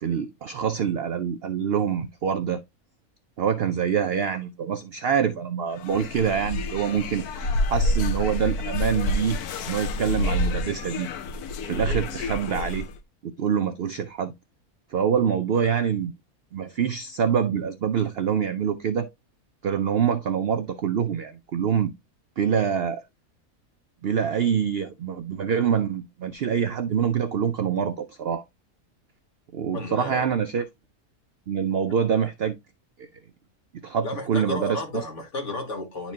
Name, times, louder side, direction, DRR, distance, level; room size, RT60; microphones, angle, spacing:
voice 1, 0.0-2.6 3.4-9.4 9.7-11.1 11.7-12.9 13.2-14.3 14.9-16.1 16.5-19.1 19.6-21.9 22.4-23.0 24.0-28.4 29.5-30.7 31.5-32.6 33.0-33.1 33.8-34.8, right 7 dB, 65° right, 0.6 m, -25 dB
sound 1, 5.8-12.9, left 1 dB, 90° left, 1.2 m, -28 dB
voice 2, 29.7-30.2 34.0-36.1, left 2 dB, 55° left, 2.1 m, -32 dB
10.5 x 4.4 x 2.7 m
omnidirectional pair, 1.6 m